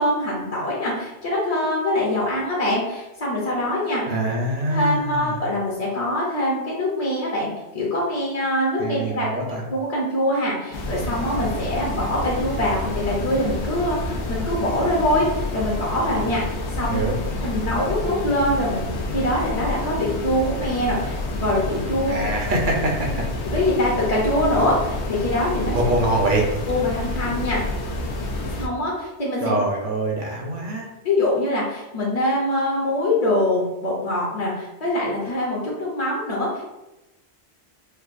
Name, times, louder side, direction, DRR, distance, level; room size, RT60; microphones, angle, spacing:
voice 1, 0.0-4.2 4.7-9.3 9.7-17.1 17.4-22.1 23.5-25.8 26.7-27.6 28.6-29.6 31.0-36.7, left 1 dB, 40° left, -5 dB, 0.7 m, -24 dB
voice 2, 4.0-5.4 8.8-9.6 16.9-17.2 22.1-23.2 25.7-26.5 29.4-30.9, right 2 dB, 55° right, 0 dB, 0.8 m, -24 dB
sound 1, 10.7-28.7, left 2 dB, 85° left, 0.9 m, -28 dB
4.4 x 2.3 x 2.5 m, 1.0 s
omnidirectional pair, 1.1 m